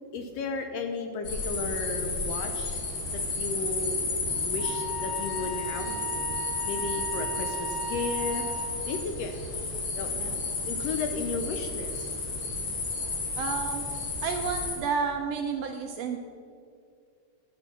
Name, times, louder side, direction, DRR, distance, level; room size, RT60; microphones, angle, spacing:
voice 1, 0.1-2.8 3.1-4.0 4.4-6.4 6.6-8.6 8.9-9.3 9.9-10.2 10.7-12.1, left 3 dB, 70° left, 6 dB, 1.6 m, -34 dB
sound 1, 1.2-14.8, left 3 dB, 45° left, 2.3 m, -32 dB
Wind instrument woodwind instrument, 4.6-8.8, right 1 dB, 15° left, 3.2 m, -36 dB
voice 2, 13.4-13.8 14.2-16.2, right 6 dB, 75° right, 4 dB, 1.5 m, -31 dB
11.0 x 7.4 x 6.1 m, 2.3 s
omnidirectional pair, 3.4 m